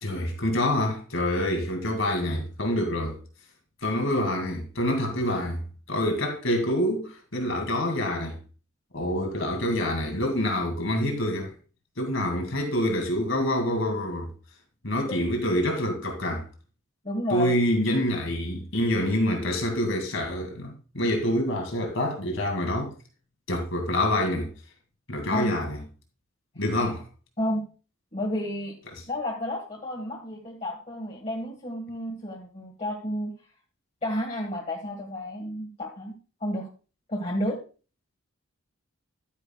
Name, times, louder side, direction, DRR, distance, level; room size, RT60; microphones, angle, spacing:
voice 1, 0.0-3.2 3.8-5.6 5.9-8.4 8.9-11.5 12.0-14.3 14.8-16.5 17.3-22.9 23.5-24.5 25.1-25.8 26.6-27.0, left 1 dB, 70° left, 2.4 m, -26 dB
voice 2, 17.0-17.6 25.3-25.5 27.4-27.7 28.1-28.8 29.1-33.3 34.0-36.1 36.4-36.7 37.1-37.6, left 1 dB, 35° left, 1.7 m, -31 dB
11.0 x 9.8 x 2.4 m
head